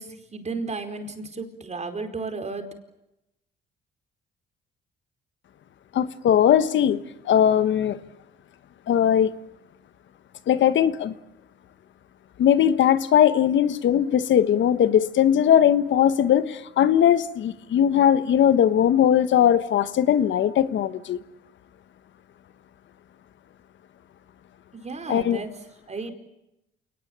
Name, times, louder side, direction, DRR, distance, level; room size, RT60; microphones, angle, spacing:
voice 1, 0.0-2.7 24.7-25.5 25.9-26.1, right 3 dB, 35° right, 4.7 m, -33 dB
voice 2, 5.9-7.0 7.2-8.0 8.9-9.3 10.5-11.1 12.4-21.2 25.1-25.4, left 9 dB, 70° left, 1.4 m, -19 dB
28.5 x 19.5 x 8.8 m
cardioid pair, 90°, 20 cm